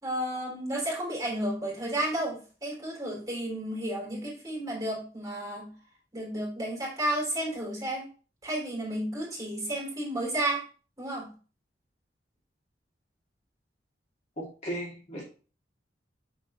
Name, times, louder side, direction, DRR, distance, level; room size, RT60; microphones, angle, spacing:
voice 1, 0.0-5.7 6.1-8.1 8.4-10.6 11.0-11.3, right 1 dB, 20° right, -4 dB, 3.6 m, -32 dB
voice 2, 14.4-15.2, right 1 dB, 40° left, -4 dB, 2.4 m, -36 dB
6.3 x 5.4 x 3.1 m, 0.37 s
head